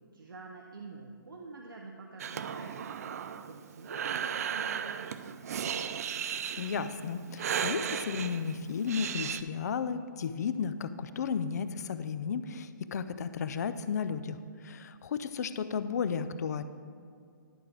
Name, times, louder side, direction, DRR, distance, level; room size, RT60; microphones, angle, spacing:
voice 1, 0.1-5.5, right 3 dB, 85° right, 1 dB, 0.8 m, -47 dB
Breathing, 2.2-9.4, right 8 dB, 45° right, 0.3 m, -36 dB
voice 2, 6.6-14.4 14.6-16.6, left 6 dB, 55° left, 12 dB, 0.4 m, -33 dB
11.0 x 4.4 x 4.9 m, 2.3 s
hypercardioid pair, 140°, 11 cm